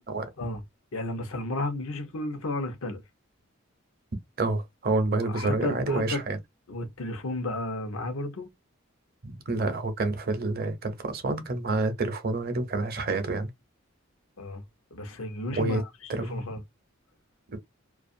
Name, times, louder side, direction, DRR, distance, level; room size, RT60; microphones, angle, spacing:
voice 1, 0.9-3.0 5.2-6.2 6.7-8.5 14.4-14.6 14.9-16.6, left 2 dB, 70° left, 0.8 m, -33 dB
voice 2, 4.4-6.4 9.2-13.5 15.5-15.8 16.1-16.4 17.5-17.6, right 3 dB, 45° right, 0.7 m, -28 dB
2.5 x 2.4 x 2.5 m
head